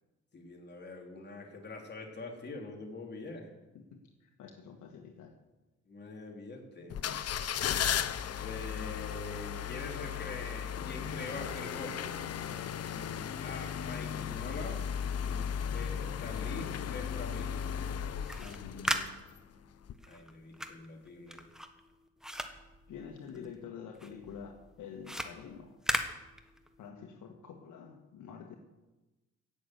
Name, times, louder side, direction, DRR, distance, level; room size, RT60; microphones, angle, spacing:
voice 1, 0.3-3.5 5.9-7.1 8.4-12.1 12.9-14.8 15.2-17.7 20.1-21.4, left 2 dB, 35° left, 1 dB, 3.6 m, -44 dB
voice 2, 3.7-5.3 18.4-19.2 22.9-25.8 26.8-28.6, left 6 dB, 75° left, 3 dB, 1.7 m, -47 dB
sound 1, 6.9-19.4 19.8-19.9, left 8 dB, 55° left, 0.9 m, -36 dB
sound 2, 18.2-23.6 23.9-26.9, equal, ahead, 1.4 m, -38 dB
17.0 x 7.0 x 8.0 m, 1.1 s
cardioid pair, 90°, 30 cm